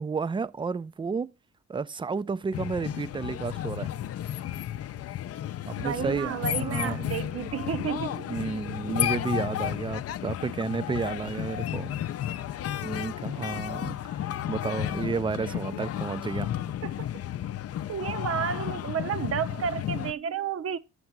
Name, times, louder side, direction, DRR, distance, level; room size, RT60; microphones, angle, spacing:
voice 1, 0.0-1.3 1.7-3.9 5.7-7.0 8.3-11.9 12.8-16.5, right 4 dB, 15° right, 0.4 m, -32 dB
sound 1, 2.5-20.1, left 11 dB, 50° left, 0.5 m, -33 dB
voice 2, 5.8-8.3 15.4-15.8 16.8-17.1 17.9-20.8, right 8 dB, 50° right, 0.8 m, -32 dB
6.9 x 6.6 x 6.0 m
cardioid pair, 90°, 30 cm